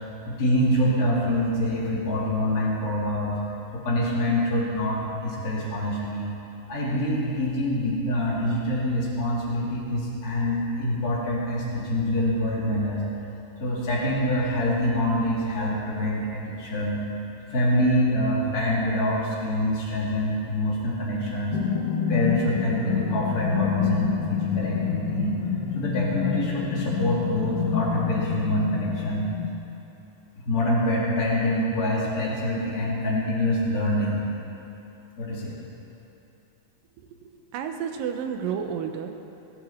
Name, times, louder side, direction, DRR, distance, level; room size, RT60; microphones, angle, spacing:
voice 1, 0.3-3.4 3.7-6.3 6.7-13.0 13.6-17.0 17.5-21.6 22.1-25.3 25.7-29.3 30.4-34.2 35.2-35.5, left 1 dB, 30° left, -7 dB, 3.0 m, -25 dB
sound 1, 21.5-29.5, left 8 dB, 70° left, 2.8 m, -28 dB
voice 2, 37.0-39.2, right 7 dB, 85° right, 6 dB, 2.6 m, -31 dB
19.5 x 11.5 x 4.4 m, 2.8 s
omnidirectional pair, 3.9 m